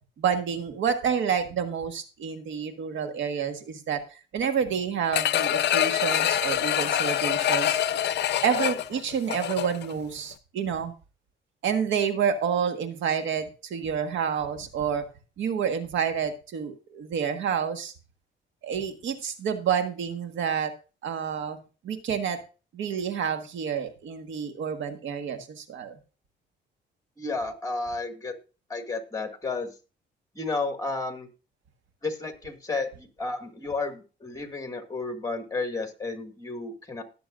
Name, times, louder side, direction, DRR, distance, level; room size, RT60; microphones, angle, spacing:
voice 1, 0.2-7.8 8.4-10.9 11.6-15.1 15.4-17.9 18.6-20.7 21.0-22.4 22.7-26.0, right 7 dB, 75° right, 7 dB, 1.6 m, -29 dB
sound 1, 5.1-9.9 10.3-10.4, left 11 dB, 60° left, 0.5 m, -25 dB
voice 2, 27.2-28.3 28.7-29.7 30.4-31.3 32.0-37.0, left 3 dB, 15° left, 5 dB, 2.0 m, -32 dB
19.0 x 7.0 x 2.6 m, 0.33 s
cardioid pair, 90°, 20 cm